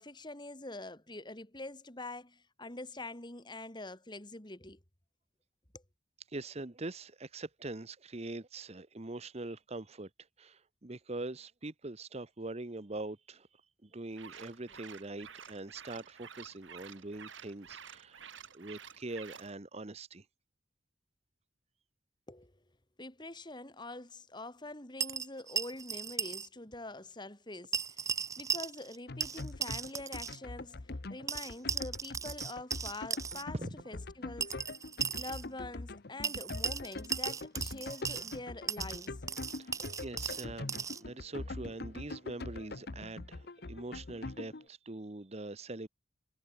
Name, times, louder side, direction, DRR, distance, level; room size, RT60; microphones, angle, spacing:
voice 1, 0.0-4.8 5.7-5.8 22.3-22.6 23.0-33.6 33.9-34.6 35.1-39.2 39.8-40.0, left 2 dB, 25° left, 2.9 m, -45 dB
voice 2, 6.3-10.1 10.4-13.5 13.8-18.2 18.5-20.2 33.5-33.7 39.6-45.9, right 2 dB, 35° right, 1.0 m, -43 dB
sound 1, 14.1-19.5, right 7 dB, 80° right, 2.9 m, -51 dB
sound 2, 25.0-26.5 26.7-26.8 27.7-29.0 29.2-30.4 31.3-33.4 34.4-35.4 36.2-38.4 38.7-41.0, right 6 dB, 15° right, 0.4 m, -37 dB
sound 3, 29.1-44.6, left 2 dB, 55° left, 1.0 m, -43 dB
head